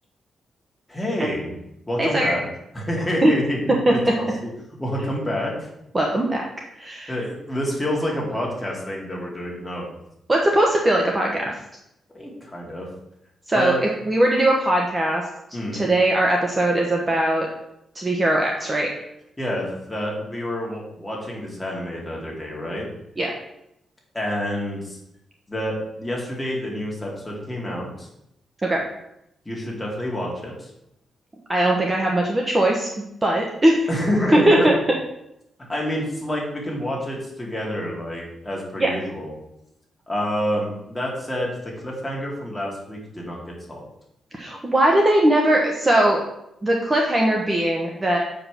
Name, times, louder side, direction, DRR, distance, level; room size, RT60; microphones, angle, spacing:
voice 1, 0.9-1.5 1.9-2.4 2.7-4.5 4.8-5.7 7.1-9.8 12.1-12.9 13.5-13.8 15.5-15.9 19.4-22.9 24.1-25.0 25.5-28.1 29.5-30.7 33.9-34.7 35.7-39.3 40.1-43.8, equal, 10° left, -3 dB, 2.4 m, -28 dB
voice 2, 2.0-2.3 3.2-3.3 3.9-4.0 5.9-6.4 6.8-7.2 10.3-11.6 13.5-13.7 14.1-15.2 15.7-17.5 17.9-18.9 23.2-23.3 28.6-28.8 31.5-32.9 33.2-33.9 34.5-34.8 38.8-38.9 44.3-46.2 46.6-48.2, right 1 dB, 20° right, 0 dB, 1.0 m, -20 dB
7.2 x 5.2 x 6.3 m, 0.81 s
wide cardioid pair, 150°, 0 cm